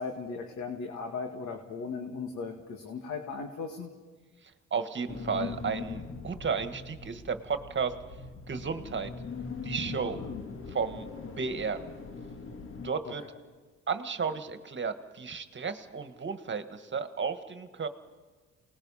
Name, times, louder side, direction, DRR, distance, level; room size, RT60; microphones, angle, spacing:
voice 1, 0.0-3.9 10.2-10.4, left 4 dB, 70° left, 3 dB, 2.2 m, -37 dB
voice 2, 4.4-8.0 8.5-9.1 9.6-10.2 10.7-11.8 12.8-13.3 13.9-17.9, right 5 dB, 40° right, 9 dB, 1.6 m, -33 dB
sound 1, 5.1-12.9, left 4 dB, 45° left, 1.8 m, -41 dB
28.5 x 19.5 x 5.7 m, 1.4 s
cardioid pair, 90°, 30 cm